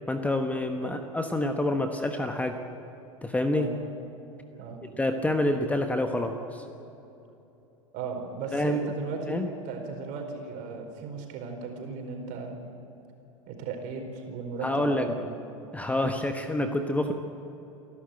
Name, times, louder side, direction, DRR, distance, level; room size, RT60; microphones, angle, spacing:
voice 1, 0.1-2.6 3.2-3.7 5.0-6.6 8.5-8.9 9.3-9.5 14.6-15.1 15.7-17.1, left 1 dB, 10° left, 6 dB, 1.3 m, -27 dB
voice 2, 7.9-9.4 9.6-12.6 13.5-15.2, right 4 dB, 50° right, 3 dB, 4.7 m, -36 dB
29.0 x 12.0 x 8.0 m, 3.0 s
hypercardioid pair, 95°, 18 cm